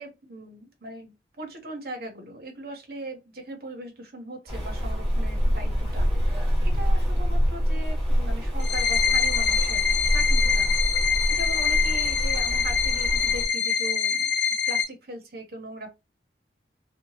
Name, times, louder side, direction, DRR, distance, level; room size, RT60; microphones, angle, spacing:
voice 1, 0.0-9.9 10.1-10.9 11.3-14.3 14.7-15.9, right 1 dB, 55° right, 1.0 m, -39 dB
Rain, 4.5-13.5, equal, 10° right, 1.7 m, -25 dB
sound 1, 8.6-14.8, left 6 dB, 65° left, 0.6 m, -24 dB
2.8 x 2.4 x 2.7 m
head